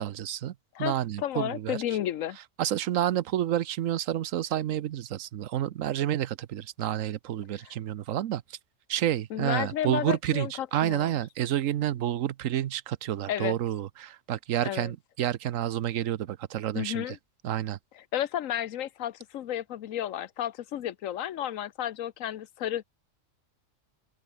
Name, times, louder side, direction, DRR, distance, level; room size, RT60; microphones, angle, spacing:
voice 1, 0.0-1.8 2.6-8.6 8.9-17.0 17.4-17.8, right 11 dB, 90° right, 1.1 m, -29 dB
voice 2, 0.7-2.4 7.6-7.7 9.3-11.2 13.3-13.5 14.6-14.9 16.7-17.2 17.9-22.8, left 11 dB, 90° left, 1.2 m, -32 dB
open air
omnidirectional pair, 1.3 m